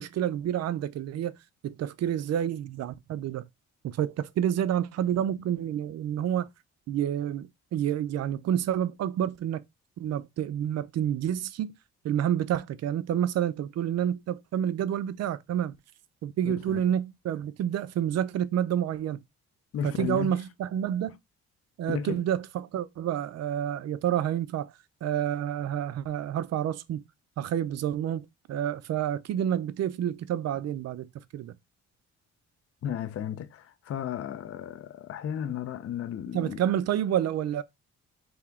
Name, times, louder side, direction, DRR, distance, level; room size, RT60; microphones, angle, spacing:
voice 1, 0.0-1.4 1.6-3.4 3.8-6.5 6.9-9.6 10.0-11.7 12.0-15.8 16.2-19.2 19.8-21.2 21.8-24.7 25.0-27.0 27.4-31.5 36.3-37.6, right 10 dB, 55° right, 0.5 m, -29 dB
voice 2, 16.4-16.8 19.7-20.3 21.9-22.2 32.8-36.6, left 9 dB, 50° left, 0.6 m, -34 dB
3.5 x 2.8 x 3.5 m
cardioid pair, 90°, 30 cm